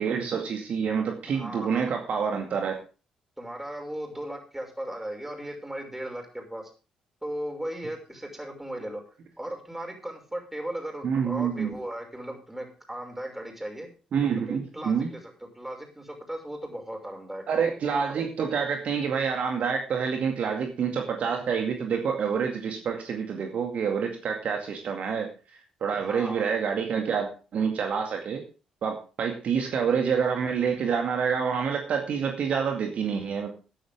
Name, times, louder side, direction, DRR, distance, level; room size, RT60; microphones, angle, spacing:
voice 1, 0.0-2.7 11.0-11.7 14.1-15.1 17.5-25.3 25.8-28.4 28.8-33.5, right 6 dB, 50° right, 3 dB, 2.2 m, -27 dB
voice 2, 1.3-1.9 3.4-6.7 7.2-9.0 9.4-13.9 14.5-17.4 25.9-26.4, right 1 dB, 10° right, 3 dB, 5.9 m, -37 dB
15.0 x 11.5 x 3.6 m, 0.35 s
figure-of-eight pair, 40°, 3 cm